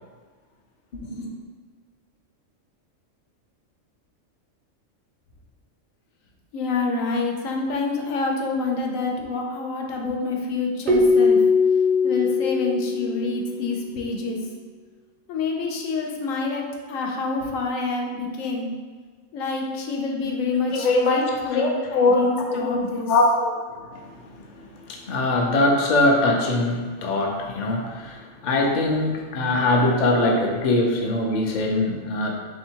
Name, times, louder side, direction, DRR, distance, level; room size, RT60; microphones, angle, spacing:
voice 1, 6.5-11.4 12.0-14.4 15.3-18.7 19.3-23.1, left 3 dB, 80° left, 0 dB, 1.1 m, -27 dB
Keyboard (musical), 10.9-13.7, left 4 dB, 60° right, 0.6 m, -20 dB
voice 2, 20.7-22.8 23.1-32.3, left 2 dB, 50° left, 0 dB, 0.6 m, -22 dB
3.4 x 2.8 x 4.4 m, 1.5 s
omnidirectional pair, 1.3 m